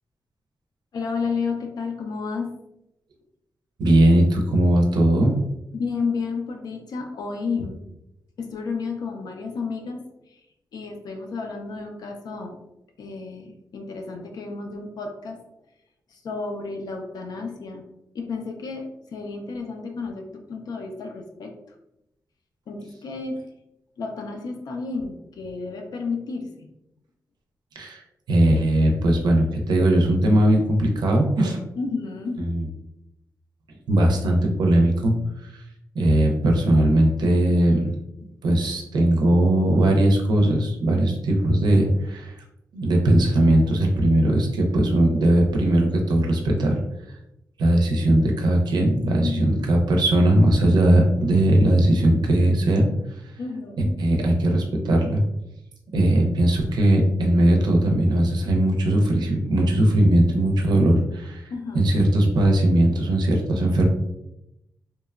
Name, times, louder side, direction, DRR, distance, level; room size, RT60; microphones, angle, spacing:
voice 1, 0.9-2.6 5.7-7.8 8.4-10.4 10.7-12.6 13.0-15.4 16.1-17.8 18.1-21.5 22.7-23.4 24.0-26.7 31.8-32.4 49.2-49.7 53.4-54.0 60.2-60.3 61.5-61.9, left 4 dB, 65° left, 3 dB, 0.4 m, -31 dB
voice 2, 3.8-5.4 27.8-28.0 28.3-31.6 32.4-32.7 33.9-35.2 35.4-35.6 35.9-37.9 38.4-42.4 42.7-46.8 47.6-52.9 54.0-55.2 55.9-61.5 61.7-63.9, right 1 dB, 85° right, 2 dB, 0.5 m, -19 dB
2.8 x 2.1 x 2.3 m, 0.86 s
wide cardioid pair, 135°, 7 cm